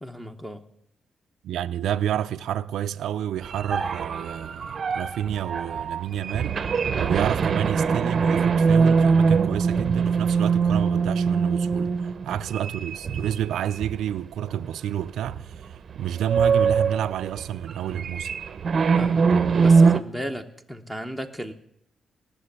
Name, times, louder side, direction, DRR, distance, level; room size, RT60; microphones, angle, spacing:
voice 1, 0.0-0.7 18.9-21.5, equal, 5° left, 0.9 m, -35 dB
voice 2, 1.4-6.6 7.0-11.9 12.2-18.3, right 10 dB, 90° right, 0.4 m, -29 dB
sound 1, 3.4-14.1 14.5-14.7 15.2-15.6 15.9-20.0, right 5 dB, 45° right, 0.7 m, -23 dB
18.0 x 6.8 x 9.9 m
cardioid pair, 120°, 0 cm